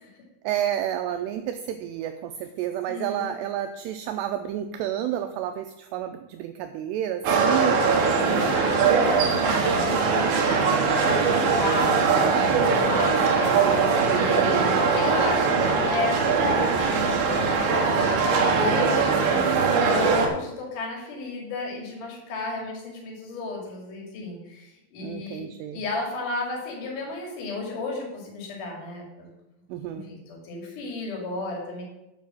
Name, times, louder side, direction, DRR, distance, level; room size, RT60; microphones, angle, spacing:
voice 1, 0.4-7.8 14.5-14.8 25.0-25.8 29.7-30.1, right 10 dB, 90° right, 7 dB, 2.4 m, -30 dB
voice 2, 2.9-3.3 8.3-17.9 18.3-25.4 25.7-29.3 29.9-31.8, left 3 dB, 50° left, -1 dB, 3.5 m, -33 dB
sound 1, 7.2-20.3, right 5 dB, 65° right, 2.3 m, -21 dB
Trumpet, 9.8-12.4, left 1 dB, 25° right, 4.6 m, -40 dB
9.4 x 5.2 x 7.5 m, 0.93 s
omnidirectional pair, 5.4 m